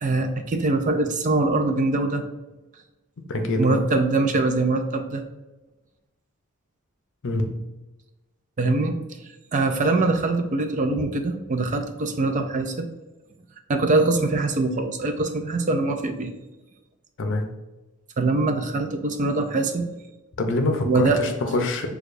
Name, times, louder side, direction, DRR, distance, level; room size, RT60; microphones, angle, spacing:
voice 1, 0.0-2.2 3.6-5.2 8.6-12.9 13.7-16.3 18.2-19.9 20.8-21.2, right 2 dB, 35° right, 7 dB, 0.4 m, -23 dB
voice 2, 3.3-3.8 7.2-7.6 11.0-11.1 17.2-17.4 20.4-21.9, left 2 dB, 60° left, 5 dB, 0.6 m, -25 dB
6.5 x 2.3 x 2.5 m, 1.1 s
head